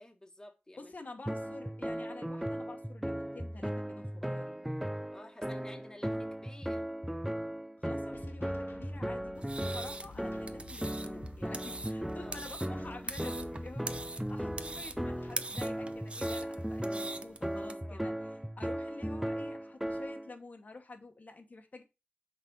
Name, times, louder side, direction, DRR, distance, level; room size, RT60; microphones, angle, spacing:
voice 1, 0.0-0.9 5.1-6.9 9.6-9.8 12.1-12.5 17.8-18.1, left 1 dB, 15° left, 1.3 m, -52 dB
voice 2, 0.8-4.7 7.8-21.8, left 3 dB, 45° left, 1.1 m, -49 dB
sound 1, 1.3-20.3, equal, 5° right, 0.4 m, -37 dB
sound 2, 8.1-15.3, left 3 dB, 75° left, 1.5 m, -52 dB
sound 3, 9.4-17.7, right 2 dB, 30° right, 0.7 m, -43 dB
7.0 x 4.1 x 5.3 m
wide cardioid pair, 110°, 4 cm